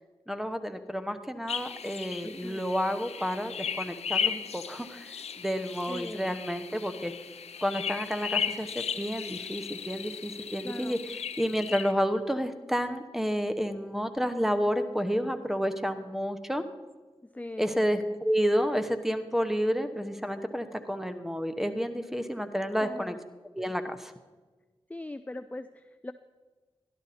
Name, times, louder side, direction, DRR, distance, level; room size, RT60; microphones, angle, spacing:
voice 1, 0.3-7.1 7.6-16.6 17.6-23.2 23.6-24.1, equal, 5° right, 9 dB, 1.0 m, -30 dB
sound 1, 1.5-11.9, left 7 dB, 90° left, 0.5 m, -36 dB
voice 2, 2.2-2.6 5.9-6.4 10.6-11.0 17.3-17.8 22.8-23.2 24.9-26.1, left 2 dB, 15° left, 10 dB, 0.4 m, -40 dB
12.0 x 12.0 x 4.2 m, 1.3 s
cardioid pair, 50°, 11 cm